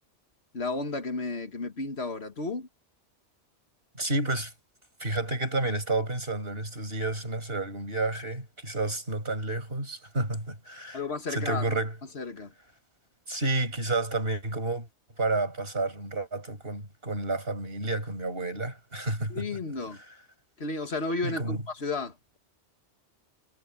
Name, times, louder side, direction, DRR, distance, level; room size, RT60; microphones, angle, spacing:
voice 1, 0.5-2.7 10.9-11.8 12.1-12.5 19.3-20.0 20.6-22.4, left 3 dB, 70° left, 2.1 m, -33 dB
voice 2, 4.0-4.5 5.0-11.0 11.3-11.9 13.3-14.9 15.2-19.4 21.2-21.6, right 2 dB, 60° right, 7.3 m, -30 dB
omnidirectional pair, 1.1 m